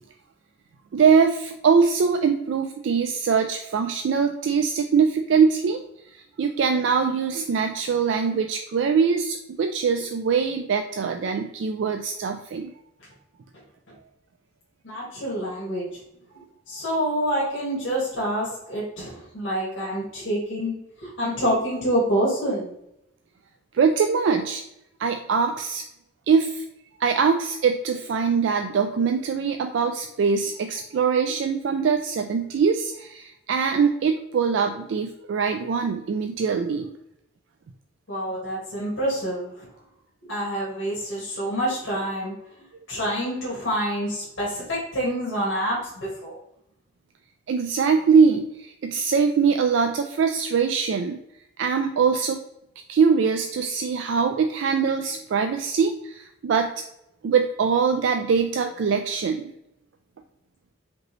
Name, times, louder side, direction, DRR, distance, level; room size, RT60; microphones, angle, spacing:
voice 1, 0.9-5.8 6.4-12.7 23.7-24.6 25.0-25.8 26.3-26.6 27.0-36.9 47.5-51.2 51.6-52.4 52.9-56.7 57.2-59.5, right 5 dB, 65° right, 6 dB, 0.3 m, -22 dB
voice 2, 14.8-16.0 16.3-22.7 38.1-39.7 40.2-42.3 42.9-46.4, equal, 80° left, -6 dB, 1.7 m, -27 dB
5.1 x 3.0 x 3.0 m, 0.81 s
head